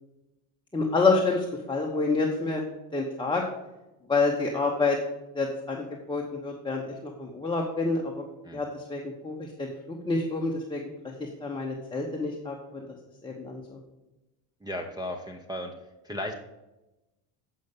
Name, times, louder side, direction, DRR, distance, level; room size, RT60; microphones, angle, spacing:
voice 1, 0.7-2.6 2.9-3.4 4.1-5.0 5.3-8.3 8.5-9.7 10.1-10.8 11.2-12.9 13.2-13.8, left 3 dB, 10° left, -2 dB, 1.0 m, -28 dB
voice 2, 14.6-15.7 16.0-16.3, left 1 dB, 10° right, 0 dB, 0.6 m, -35 dB
8.2 x 5.6 x 6.6 m, 1.0 s
cardioid pair, 125°, 49 cm